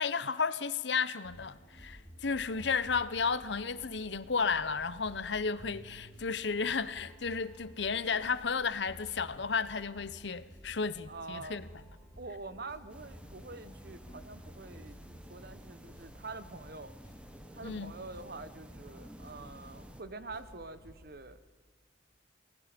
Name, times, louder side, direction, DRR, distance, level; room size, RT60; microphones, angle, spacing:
voice 1, 0.0-11.6 17.6-17.9, left 5 dB, 70° left, 0.9 m, -33 dB
sound 1, 1.2-21.0, equal, 20° left, 5.7 m, -53 dB
voice 2, 11.1-11.6 12.2-16.9 17.5-21.4, right 3 dB, 55° right, 1.2 m, -46 dB
sound 2, 12.9-20.0, equal, 5° right, 1.3 m, -52 dB
29.5 x 20.5 x 5.3 m
head